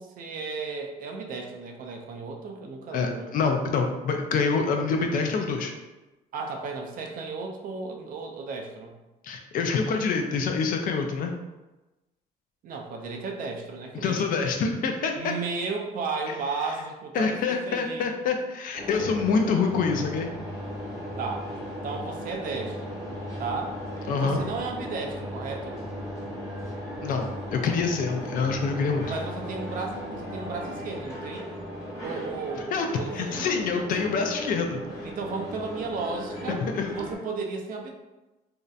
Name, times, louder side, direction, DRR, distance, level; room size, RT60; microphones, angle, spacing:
voice 1, 0.0-3.3 6.3-9.0 12.6-14.2 15.2-18.2 21.2-21.5 21.8-23.0 23.4-23.8 24.2-25.8 29.0-31.5 32.0-33.7 35.0-36.6 36.9-37.9, right 4 dB, 55° right, 2 dB, 0.4 m, -34 dB
voice 2, 2.9-5.7 9.2-11.3 13.9-15.3 17.1-20.3 24.1-24.4 27.0-27.3 27.5-29.1 32.7-32.9 33.1-35.0 36.5-36.9, left 5 dB, 55° left, 4 dB, 0.4 m, -26 dB
sound 1, 18.7-37.1, equal, 20° left, 1.0 m, -36 dB
2.6 x 2.0 x 2.4 m, 1.1 s
cardioid pair, 110°, 17 cm